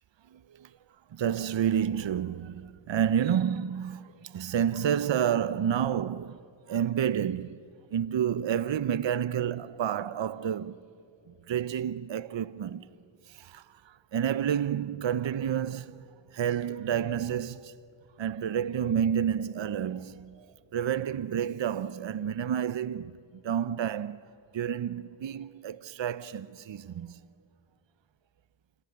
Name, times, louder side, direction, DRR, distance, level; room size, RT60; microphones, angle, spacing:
voice 1, 1.1-6.4 6.7-7.6 7.9-10.8 11.5-12.8 13.3-13.6 14.1-16.0 16.3-17.7 18.2-20.4 20.7-23.1 23.4-24.2 24.5-27.2, right 9 dB, 70° right, 0.6 m, -29 dB
28.0 x 22.0 x 9.3 m
cardioid pair, 40°, 46 cm